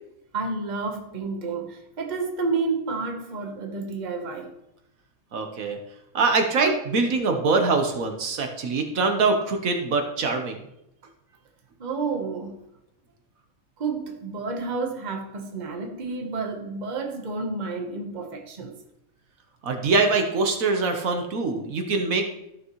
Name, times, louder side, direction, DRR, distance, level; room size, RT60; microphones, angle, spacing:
voice 1, 0.3-4.5 6.6-6.8 11.8-12.6 13.8-18.8, right 4 dB, 35° right, 1.1 m, -30 dB
voice 2, 5.3-5.8 6.1-10.6 19.6-22.3, right 3 dB, 75° right, 1.5 m, -23 dB
14.0 x 6.0 x 3.1 m
omnidirectional pair, 1.5 m